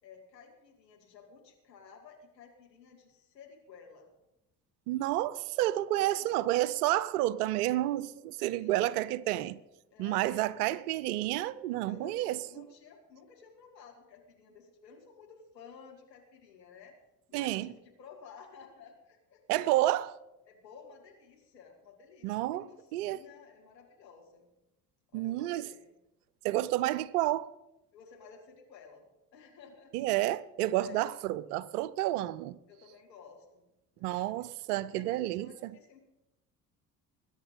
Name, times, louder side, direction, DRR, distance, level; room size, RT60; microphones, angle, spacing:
voice 1, 0.0-4.1 5.9-6.5 8.6-9.1 9.9-10.5 11.9-16.9 17.3-19.7 20.5-24.5 25.1-25.9 27.9-29.0 29.3-29.9 30.8-31.1 32.7-33.7 34.0-34.5 34.9-36.0, left 6 dB, 80° left, 2.6 m, -54 dB
voice 2, 4.9-9.6 10.0-12.7 17.3-17.7 19.5-20.1 22.2-22.7 22.9-23.2 25.1-25.7 26.4-27.5 29.9-32.6 34.0-35.5, right 15 dB, 65° right, 0.7 m, -30 dB
21.5 x 10.0 x 3.9 m
figure-of-eight pair, 55°, 50 cm